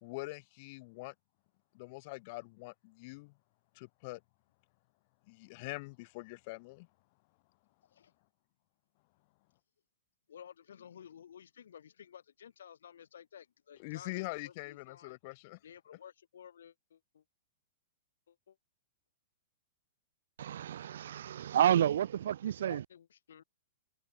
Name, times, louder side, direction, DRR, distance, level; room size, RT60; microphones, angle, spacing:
voice 1, 0.0-1.1 1.7-3.3 3.7-4.2 5.3-6.9 13.8-15.6, left 25 dB, 35° left, 1.1 m, -43 dB
voice 2, 10.3-15.2 15.6-17.2 18.3-18.6 22.7-23.4, left 8 dB, 85° left, 2.7 m, -54 dB
voice 3, 20.4-22.8, right 10 dB, 70° right, 0.5 m, -30 dB
hypercardioid pair, 170°, 0 cm